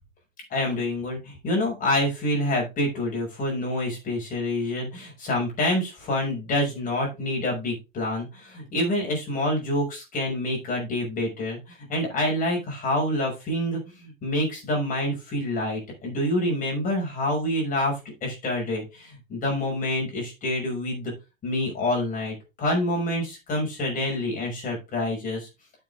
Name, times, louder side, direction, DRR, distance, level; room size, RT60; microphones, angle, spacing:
voice 1, 0.5-21.1 21.4-25.5, left 1 dB, 20° left, 0 dB, 6.0 m, -27 dB
9.3 x 7.9 x 3.7 m, 0.26 s
figure-of-eight pair, 105°, 40 cm